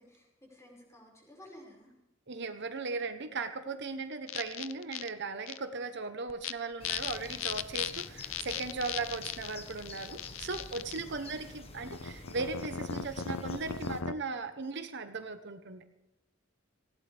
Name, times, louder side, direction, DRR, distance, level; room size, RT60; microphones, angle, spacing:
voice 1, 0.1-1.9 10.9-11.3, left 1 dB, 15° left, -2 dB, 5.6 m, -55 dB
voice 2, 2.3-15.8, right 4 dB, 60° right, 8 dB, 1.0 m, -38 dB
sound 1, 4.3-5.1 5.5-5.6 6.3-6.5 6.8-11.0 11.8-14.1, left 8 dB, 75° left, 0.6 m, -37 dB
sound 2, 6.8-14.0, left 2 dB, 30° left, 1.4 m, -48 dB
19.0 x 17.0 x 3.5 m, 0.91 s
head